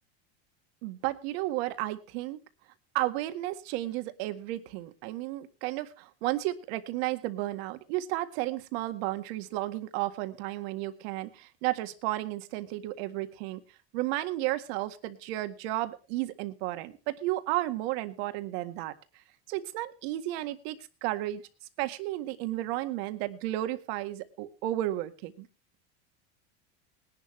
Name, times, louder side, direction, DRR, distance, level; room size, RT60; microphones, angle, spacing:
voice 1, 0.8-2.4 2.9-13.6 13.9-19.2 19.5-21.4 21.8-25.5, right 16 dB, 70° right, 9 dB, 1.8 m, -33 dB
20.0 x 11.5 x 3.3 m, 0.32 s
supercardioid pair, 115°, 32 cm